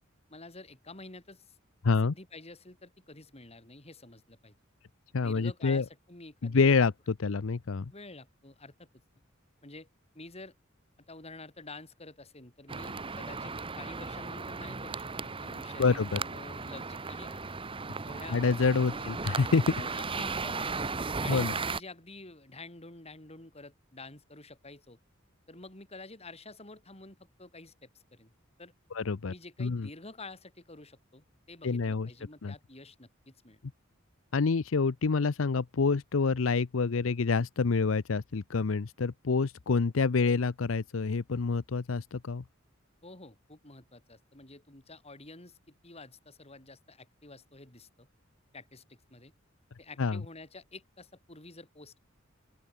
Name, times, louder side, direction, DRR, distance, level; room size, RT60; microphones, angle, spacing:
voice 1, 0.3-1.6 1.8-4.5 5.2-6.7 7.2-7.3 7.9-9.0 9.6-9.9 10.1-10.5 11.1-17.5 18.1-18.4 18.9-19.1 19.7-20.8 21.2-25.0 25.5-28.3 28.6-28.7 29.3-33.6 43.0-48.1 48.5-49.3 49.8-52.0, left 2 dB, 30° left, 4.4 m, -49 dB
voice 2, 1.8-2.1 5.1-5.8 6.4-7.9 15.8-16.2 18.3-19.6 21.3-21.5 28.9-29.3 29.6-29.9 31.6-32.1 32.4-32.5 34.3-42.4 50.0-50.2, left 4 dB, 75° left, 0.6 m, -27 dB
sound 1, 12.7-21.8, right 4 dB, 25° right, 1.0 m, -36 dB
open air
head